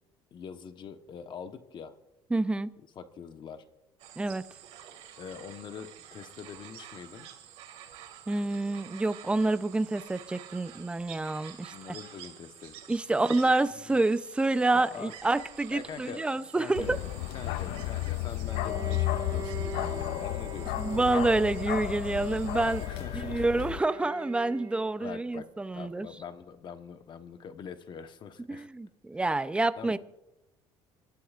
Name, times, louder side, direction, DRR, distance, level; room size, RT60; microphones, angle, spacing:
voice 1, 0.3-1.9 2.9-3.6 5.2-7.3 11.7-12.8 13.1-14.0 14.7-15.1 15.7-16.2 16.6-16.9 17.3-21.0 22.8-23.7 25.0-25.5 25.7-28.7 29.8-30.0, left 7 dB, 45° left, 1.1 m, -44 dB
voice 2, 2.3-2.7 4.2-4.4 8.3-11.7 12.9-17.0 20.8-22.8 23.1-26.1 28.5-30.0, right 2 dB, 10° right, 0.6 m, -28 dB
sound 1, 4.0-22.9, right 10 dB, 75° right, 2.2 m, -49 dB
Bark, 16.8-23.8, left 17 dB, 80° left, 0.4 m, -33 dB
Bowed string instrument, 18.4-25.2, right 6 dB, 35° right, 4.6 m, -43 dB
25.5 x 12.5 x 2.5 m
cardioid pair, 105°, 11 cm